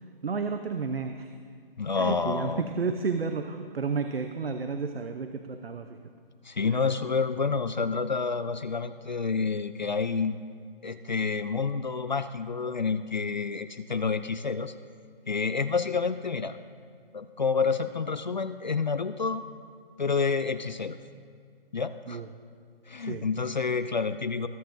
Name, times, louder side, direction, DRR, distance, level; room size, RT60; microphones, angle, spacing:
voice 1, 0.0-1.3 2.0-6.0 22.1-22.3 23.0-23.3, right 5 dB, 80° right, 7 dB, 0.8 m, -32 dB
voice 2, 1.8-2.6 6.4-10.4 10.8-14.7 15.3-16.6 17.1-19.4 20.0-21.0 21.7-22.2 22.9-24.5, left 5 dB, 50° left, 11 dB, 0.4 m, -29 dB
22.0 x 9.5 x 2.6 m, 2.1 s
figure-of-eight pair, 170°, 30 cm